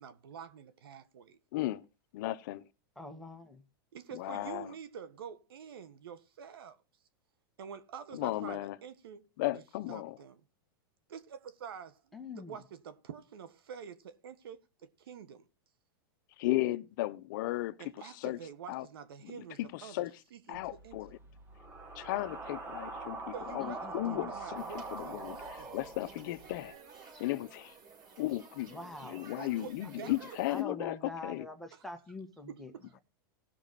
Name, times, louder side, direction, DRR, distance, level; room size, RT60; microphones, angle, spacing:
voice 1, 0.0-1.4 3.9-6.8 7.6-9.3 9.5-9.6 9.9-10.4 11.1-15.4 17.8-21.0 23.3-25.8 26.4-26.9 29.3-30.1 31.7-31.8 32.5-33.0, right 7 dB, 90° right, 1.4 m, -47 dB
voice 2, 1.5-1.8 2.1-2.6 4.1-4.7 8.1-8.8 9.4-10.2 16.4-17.7 18.2-18.4 18.7-18.8 19.2-20.1 20.5-21.1 22.0-23.2 23.5-24.6 24.9-26.7 27.2-27.7 28.2-31.5, left 16 dB, 60° left, 0.8 m, -35 dB
voice 3, 3.0-3.6 12.1-12.6 23.6-24.3 28.7-29.3 30.5-32.7, left 2 dB, ahead, 1.6 m, -44 dB
sound 1, 20.5-26.7, right 3 dB, 20° right, 1.9 m, -44 dB
sound 2, 24.5-30.6, right 5 dB, 35° right, 4.5 m, -53 dB
18.0 x 6.1 x 4.1 m
supercardioid pair, 140°, 12 cm